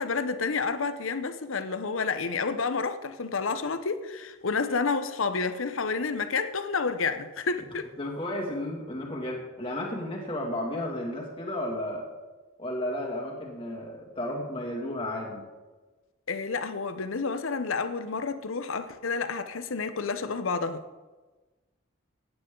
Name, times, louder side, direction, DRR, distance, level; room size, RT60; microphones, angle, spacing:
voice 1, 0.0-7.9 16.3-20.8, left 4 dB, 75° left, 0.8 m, -30 dB
voice 2, 8.0-12.1 12.6-15.5, left 1 dB, 25° left, 2.2 m, -33 dB
16.5 x 9.3 x 3.8 m
head